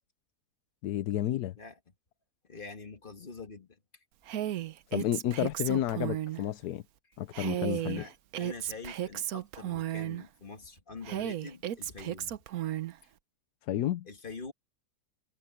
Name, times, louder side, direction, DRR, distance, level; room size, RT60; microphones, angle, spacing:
voice 1, 0.8-1.6 4.9-6.8 7.2-8.1 13.7-14.1, left 12 dB, 80° left, 1.2 m, -31 dB
voice 2, 2.5-3.8 7.6-12.4 13.0-13.1 14.1-14.5, left 4 dB, 35° left, 1.9 m, -45 dB
Female speech woman speaking, 4.3-6.4 7.3-10.2 11.0-12.9, right 12 dB, 70° right, 1.2 m, -34 dB
omnidirectional pair, 1.7 m